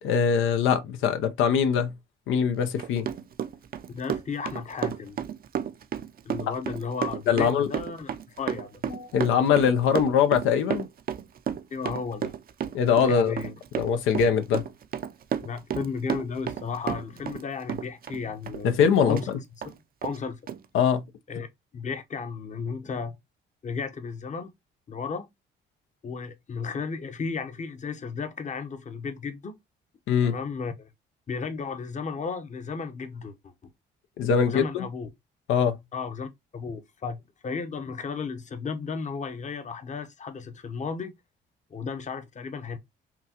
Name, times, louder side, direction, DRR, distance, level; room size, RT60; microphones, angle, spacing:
voice 1, 0.0-1.9 2.3-3.1 7.3-7.7 8.9-10.9 12.7-13.3 13.8-14.6 18.6-19.4 20.7-21.0 30.1-30.3 34.2-34.9 35.5-35.8, left 7 dB, 85° left, 0.6 m, -22 dB
Run, 2.6-17.4 17.7-19.3 19.6-19.7 20.0-20.2 20.5-20.6, right 8 dB, 50° right, 0.5 m, -32 dB
voice 2, 3.9-5.2 6.2-8.8 11.7-12.3 13.1-13.5 15.4-18.7 19.0-19.3 20.0-20.4 21.3-21.5 21.7-23.2 23.6-24.5 24.9-25.3 26.0-29.5 30.2-30.9 31.3-33.5 34.4-35.1 35.9-41.1 41.7-42.8, left 5 dB, 35° left, 0.8 m, -34 dB
5.8 x 2.3 x 2.8 m
cardioid pair, 90°, 20 cm